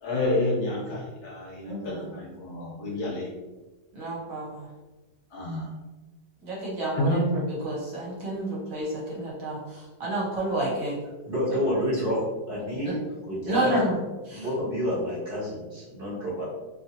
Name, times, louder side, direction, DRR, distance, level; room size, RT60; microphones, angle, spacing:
voice 1, 0.0-3.3 5.3-5.7 6.9-7.3, left 1 dB, 65° left, -4 dB, 1.2 m, -29 dB
voice 2, 1.7-2.1 3.9-4.7 6.4-10.9 12.8-12.9 13.5-14.0 14.3-14.5, right 1 dB, 60° right, -6 dB, 1.1 m, -30 dB
voice 3, 11.2-12.2 12.5-13.9 14.3-16.4, equal, 40° right, -9 dB, 0.9 m, -29 dB
2.8 x 2.7 x 2.7 m, 1.2 s
omnidirectional pair, 1.9 m